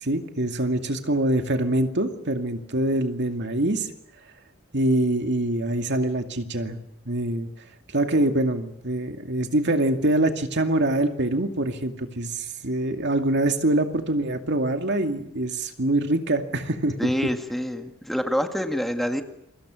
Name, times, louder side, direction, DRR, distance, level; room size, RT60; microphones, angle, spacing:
voice 1, 0.0-3.9 4.7-6.8 7.1-7.5 7.9-17.1, right 1 dB, 55° right, 5 dB, 2.3 m, -24 dB
voice 2, 17.0-19.2, equal, ahead, 5 dB, 1.8 m, -26 dB
28.5 x 24.5 x 6.4 m, 0.79 s
head